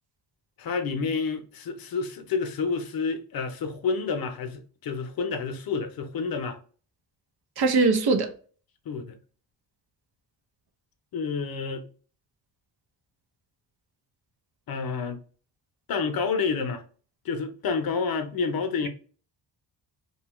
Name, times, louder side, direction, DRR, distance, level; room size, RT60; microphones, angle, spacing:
voice 1, 0.6-6.6 8.9-9.2 11.1-11.9 14.7-15.2 15.9-16.8 17.2-18.9, left 5 dB, 55° left, 0.7 m, -29 dB
voice 2, 7.6-8.3, right 4 dB, 60° right, 0.7 m, -21 dB
2.7 x 2.3 x 3.0 m
cardioid pair, 90°, 43 cm